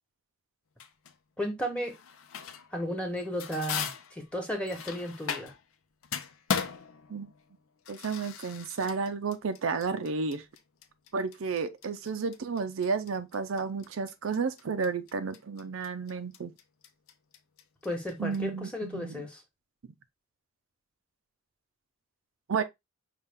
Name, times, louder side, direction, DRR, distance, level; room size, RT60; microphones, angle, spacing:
sound 1, 0.8-1.2 1.8-2.8 3.1-5.7 6.0-18.4, left 7 dB, 85° left, 0.6 m, -38 dB
voice 1, 1.4-1.9 2.7-5.5 17.8-19.4, equal, 5° left, 1.2 m, -34 dB
voice 2, 7.9-10.4 11.1-16.5 18.2-19.2 22.5-22.6, right 5 dB, 70° right, 0.5 m, -32 dB
5.7 x 2.4 x 3.5 m
head